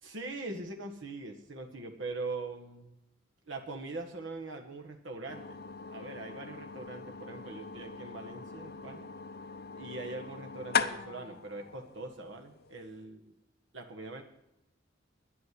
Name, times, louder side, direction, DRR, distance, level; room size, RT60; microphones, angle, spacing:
voice 1, 0.0-2.9 3.5-5.6 5.9-9.1 9.7-13.3 13.7-14.2, right 3 dB, 70° right, 2 dB, 1.6 m, -42 dB
sound 1, 5.3-13.0, left 6 dB, 50° left, 0.7 m, -39 dB
10.5 x 8.8 x 9.7 m, 0.85 s
head